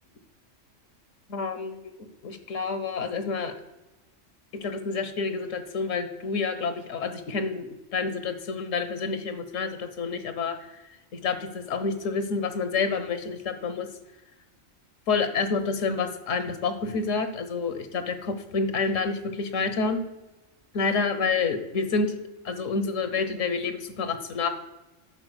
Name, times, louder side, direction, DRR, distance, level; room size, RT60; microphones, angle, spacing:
voice 1, 1.3-1.9 2.2-3.5 4.6-10.5 11.1-13.9 15.1-20.0 20.7-22.1 22.4-24.5, left 4 dB, 90° left, 9 dB, 1.5 m, -28 dB
11.0 x 4.5 x 8.0 m, 1.0 s
omnidirectional pair, 1.3 m